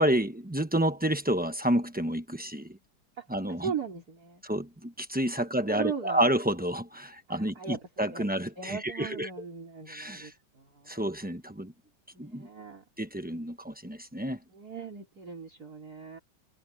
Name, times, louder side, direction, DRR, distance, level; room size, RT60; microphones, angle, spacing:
voice 1, 0.0-2.8 3.3-3.7 4.4-9.3 9.9-10.3 10.9-11.7 12.2-12.5 13.0-14.4, right 1 dB, 10° right, 0.4 m, -29 dB
voice 2, 3.2-4.4 5.4-6.3 7.3-8.3 8.6-11.0 12.1-12.8 14.5-16.2, right 6 dB, 45° right, 4.3 m, -39 dB
omnidirectional pair, 2.2 m